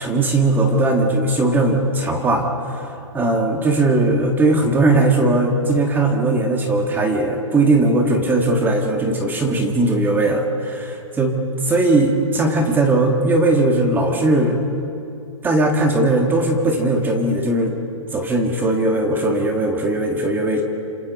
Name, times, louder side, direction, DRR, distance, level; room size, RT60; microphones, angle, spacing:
voice 1, 0.0-2.9 3.1-11.4 11.6-14.6 15.4-17.7 18.1-20.6, right 2 dB, 10° right, 3 dB, 1.7 m, -18 dB
27.5 x 26.5 x 4.2 m, 2.7 s
hypercardioid pair, 145°, 17 cm